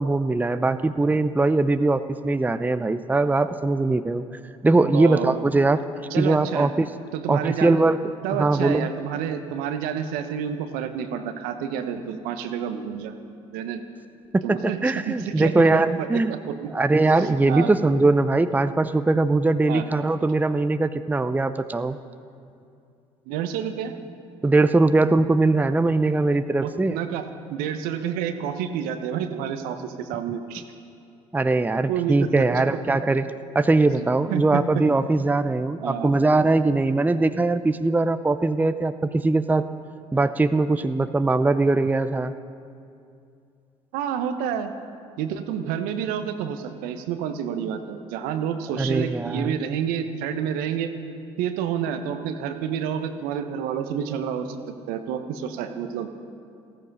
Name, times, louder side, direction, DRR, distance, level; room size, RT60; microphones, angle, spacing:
voice 1, 0.0-4.2 4.6-5.8 6.2-6.9 7.3-8.0 8.4-8.9 14.3-16.3 16.7-22.0 24.4-27.0 31.3-33.3 33.5-39.6 40.1-42.3 48.8-49.5, right 2 dB, 10° right, 11 dB, 0.6 m, -21 dB
voice 2, 4.9-5.3 6.1-6.7 7.1-7.8 8.2-13.1 13.5-13.8 14.4-14.8 15.1-15.6 16.3-16.7 17.5-17.7 19.7-19.9 23.3-23.9 26.6-30.6 31.9-32.4 34.0-34.1 34.3-34.6 35.8-36.1 43.9-44.7 45.2-50.9 51.4-54.6 54.9-56.1, right 8 dB, 70° right, 8 dB, 1.1 m, -29 dB
15.5 x 14.0 x 5.5 m, 2.5 s
hypercardioid pair, 55°, 16 cm